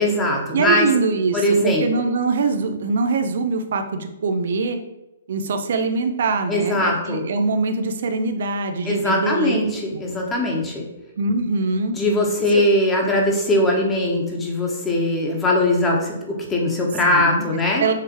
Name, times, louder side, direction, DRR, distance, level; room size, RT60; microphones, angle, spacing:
voice 1, 0.0-0.9 1.3-2.0 6.5-7.2 8.8-10.9 11.9-17.8, left 1 dB, 15° left, -1 dB, 1.4 m, -20 dB
voice 2, 0.5-4.8 5.3-9.6 11.2-12.0 12.5-12.6 17.0-17.4 17.8-17.9, right 3 dB, 65° right, 7 dB, 0.8 m, -23 dB
6.8 x 3.3 x 4.5 m, 0.96 s
hypercardioid pair, 135°, 0 cm